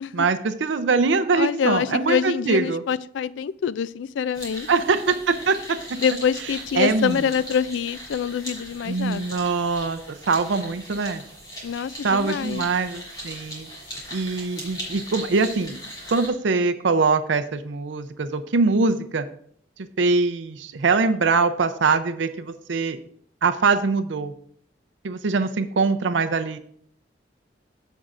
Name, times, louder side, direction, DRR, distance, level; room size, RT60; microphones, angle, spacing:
voice 1, 0.1-2.8 4.7-6.0 6.8-7.2 8.9-10.0 10.3-11.2 12.0-13.7 14.1-15.8 16.1-19.3 20.0-23.0 23.4-24.3 25.0-26.6, right 4 dB, 90° right, 0.5 m, -23 dB
voice 2, 1.4-4.7 6.0-9.5 11.6-12.6, left 7 dB, 85° left, 0.3 m, -25 dB
sound 1, 4.3-16.3, equal, 20° left, 3.2 m, -39 dB
15.0 x 5.4 x 2.5 m
head